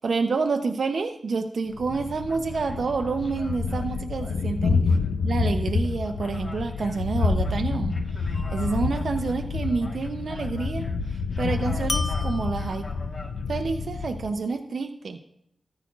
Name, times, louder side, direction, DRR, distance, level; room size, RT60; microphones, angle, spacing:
voice 1, 0.0-4.8 5.2-12.9 13.5-15.2, right 4 dB, 70° right, 6 dB, 0.6 m, -28 dB
Thunder, 1.7-14.4, left 4 dB, 90° left, 0.6 m, -28 dB
sound 1, 1.7-13.7, left 2 dB, 55° left, 1.3 m, -46 dB
sound 2, 8.3-9.0 11.9-13.3, left 2 dB, 35° left, 0.3 m, -35 dB
14.0 x 9.8 x 2.4 m, 0.74 s
cardioid pair, 40°, 0 cm